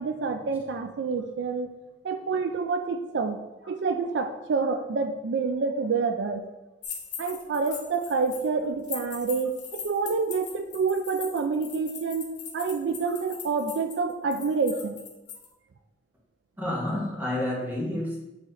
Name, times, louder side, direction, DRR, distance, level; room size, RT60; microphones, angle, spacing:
voice 1, 0.0-1.7 2.0-3.4 3.6-6.5 7.2-15.0, right 4 dB, 70° right, 7 dB, 0.4 m, -28 dB
sound 1, 6.8-8.5 8.8-15.4, left 7 dB, 70° left, 1.3 m, -40 dB
voice 2, 16.6-18.2, left 1 dB, 10° right, -5 dB, 1.4 m, -30 dB
7.8 x 3.2 x 3.9 m, 1.0 s
head